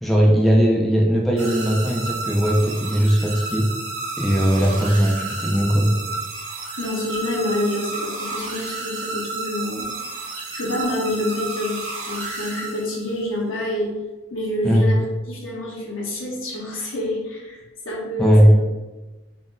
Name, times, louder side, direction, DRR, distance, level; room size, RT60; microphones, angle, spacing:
voice 1, 0.0-3.7 4.2-5.9 14.6-14.9 18.2-18.6, equal, ahead, -2 dB, 0.4 m, -18 dB
sound 1, 1.4-13.2, right 3 dB, 85° right, 0.8 m, -31 dB
voice 2, 6.8-9.9 10.5-14.0 14.3-18.7, left 1 dB, 90° left, -3 dB, 1.1 m, -27 dB
4.0 x 2.0 x 3.7 m, 1.1 s
head